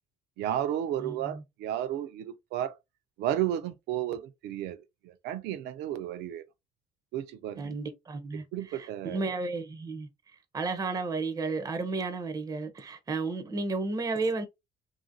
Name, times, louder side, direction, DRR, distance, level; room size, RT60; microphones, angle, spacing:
voice 1, 0.4-2.8 3.2-6.4 7.1-7.8 8.3-9.2, right 11 dB, 85° right, 0.5 m, -33 dB
voice 2, 1.0-1.4 7.6-8.4 8.7-10.1 10.5-14.5, right 3 dB, 20° right, 0.5 m, -32 dB
2.8 x 2.5 x 2.6 m
cardioid pair, 110°, 17 cm